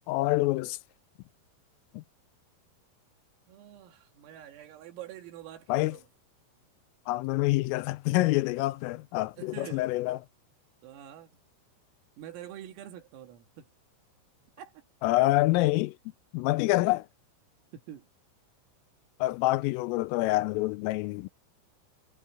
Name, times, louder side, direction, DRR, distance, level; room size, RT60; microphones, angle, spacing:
voice 1, 0.1-0.8 1.9-2.0 5.7-6.0 7.1-10.2 15.0-16.0 16.3-17.1 19.2-21.3, left 19 dB, 85° left, 3.3 m, -26 dB
voice 2, 3.5-6.0 9.4-9.9 10.8-11.4 12.2-13.7 14.6-14.8 17.7-18.1, right 11 dB, 85° right, 5.0 m, -46 dB
omnidirectional pair, 5.8 m